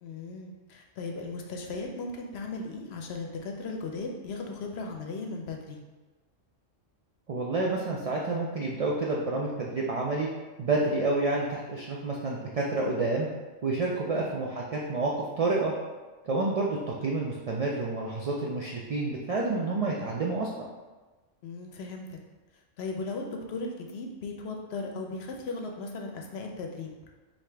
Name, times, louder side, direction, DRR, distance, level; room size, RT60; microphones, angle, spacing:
voice 1, 0.0-5.8 14.1-14.4 21.4-22.2 22.8-26.9, left 3 dB, 65° left, 2 dB, 0.8 m, -37 dB
voice 2, 7.3-10.3 10.6-13.3 13.6-15.7 16.2-20.7, right 3 dB, 70° right, -3 dB, 0.3 m, -29 dB
4.9 x 2.8 x 3.3 m, 1.2 s
omnidirectional pair, 1.3 m